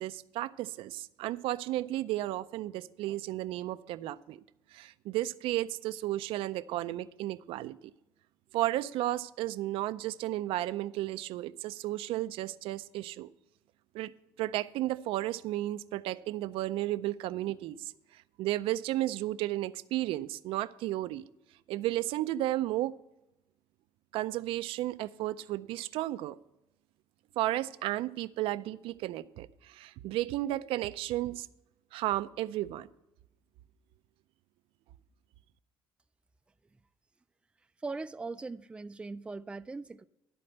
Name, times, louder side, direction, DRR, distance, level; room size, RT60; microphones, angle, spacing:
voice 1, 0.0-4.4 4.7-7.9 8.5-13.3 13.9-14.1 14.4-21.3 21.7-22.9 24.1-26.4 27.4-31.5 31.9-32.9, right 15 dB, 80° right, 0.4 m, -33 dB
voice 2, 37.8-40.1, right 3 dB, 10° right, 0.3 m, -40 dB
12.0 x 4.3 x 7.8 m
cardioid pair, 120°, 9 cm